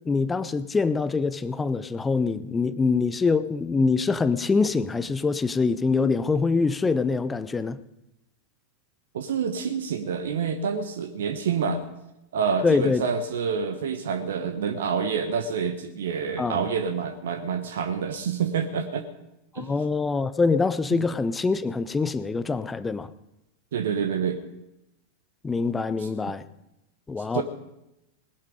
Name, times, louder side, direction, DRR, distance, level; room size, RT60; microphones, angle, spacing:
voice 1, 0.0-7.8 12.6-13.0 16.4-16.6 19.5-23.1 25.4-26.4 27.1-27.4, left 4 dB, 15° left, 14 dB, 0.7 m, -24 dB
voice 2, 9.1-11.8 12.3-19.1 19.5-19.7 20.9-21.0 23.7-24.4 27.3-27.4, right 6 dB, 60° right, 7 dB, 1.2 m, -27 dB
20.0 x 10.5 x 5.0 m, 0.90 s
figure-of-eight pair, 90°, 0 cm